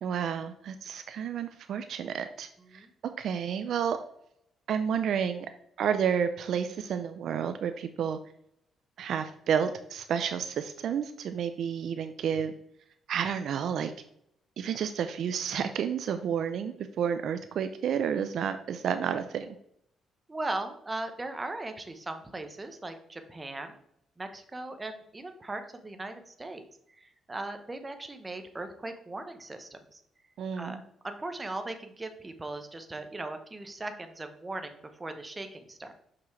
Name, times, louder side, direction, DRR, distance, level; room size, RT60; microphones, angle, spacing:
voice 1, 0.0-2.9 3.2-4.0 4.7-5.5 5.8-8.2 9.0-12.5 13.1-13.9 14.6-19.6 30.4-30.8, right 7 dB, 70° right, 9 dB, 0.4 m, -30 dB
voice 2, 2.6-2.9 20.3-23.7 24.2-30.0 30.6-35.9, right 2 dB, 20° right, 7 dB, 0.9 m, -39 dB
6.1 x 5.8 x 3.2 m, 0.72 s
cardioid pair, 90°, 0 cm